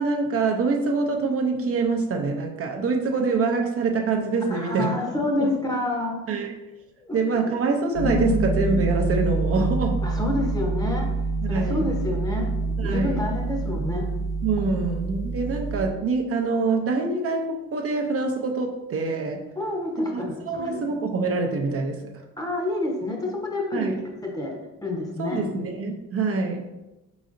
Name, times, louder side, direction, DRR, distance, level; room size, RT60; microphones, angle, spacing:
voice 1, 0.0-5.0 5.2-5.5 6.3-6.6 7.1-10.0 11.4-11.9 12.8-13.3 14.4-19.4 20.1-22.2 23.7-24.0 25.2-26.7, right 4 dB, 50° right, 3 dB, 0.6 m, -25 dB
voice 2, 4.5-6.2 7.1-7.4 8.0-8.4 10.0-11.1 11.5-12.5 12.8-14.1 19.6-20.8 22.4-23.9 24.2-25.4, left 2 dB, 10° left, 0 dB, 0.8 m, -28 dB
sound 1, 7.9-15.9, right 3 dB, 55° left, 0.8 m, -27 dB
4.0 x 3.9 x 2.5 m, 1.0 s
cardioid pair, 90°, 30 cm